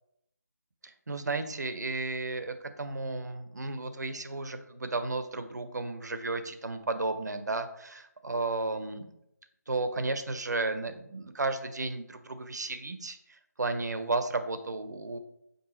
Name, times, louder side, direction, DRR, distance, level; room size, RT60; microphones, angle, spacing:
voice 1, 0.8-9.0 9.7-15.2, right 3 dB, 70° right, 9 dB, 0.6 m, -33 dB
4.8 x 2.7 x 3.7 m, 0.80 s
figure-of-eight pair, 175°, 10 cm